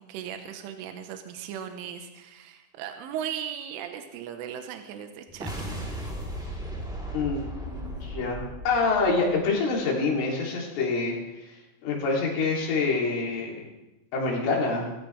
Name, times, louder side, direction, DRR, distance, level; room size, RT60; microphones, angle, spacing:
voice 1, 0.0-5.8, right 9 dB, 80° right, 6 dB, 3.7 m, -37 dB
sound 1, 5.3-9.8, right 1 dB, ahead, 2.4 m, -36 dB
voice 2, 7.1-11.2 11.5-11.6 11.8-13.6 14.1-14.9, left 3 dB, 75° left, -3 dB, 5.8 m, -26 dB
23.5 x 15.0 x 3.5 m, 0.97 s
omnidirectional pair, 5.8 m